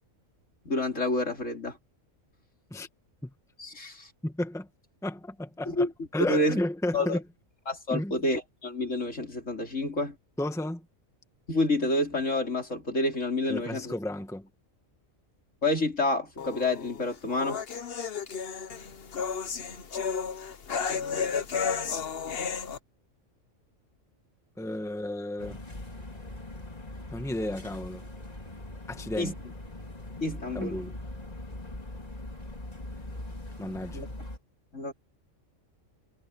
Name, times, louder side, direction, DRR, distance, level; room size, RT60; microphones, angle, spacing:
voice 1, 0.6-1.8 3.6-4.1 5.7-5.9 6.3-6.6 6.9-7.2 7.7-10.1 11.5-13.9 15.6-17.6 29.2-29.3 30.2-30.8 33.9-34.1 34.7-34.9, left 2 dB, 70° left, 4.3 m, -28 dB
voice 2, 4.2-4.7 5.0-5.9 6.1-7.2 7.9-8.2 10.4-10.8 13.5-14.5 24.6-25.6 27.1-28.0 28.9-29.3 30.5-31.0 33.6-34.0, left 1 dB, ahead, 1.4 m, -32 dB
sound 1, 16.4-22.8, left 6 dB, 50° left, 1.2 m, -33 dB
sound 2, 25.4-34.4, left 1 dB, 30° left, 2.8 m, -41 dB
omnidirectional pair, 1.4 m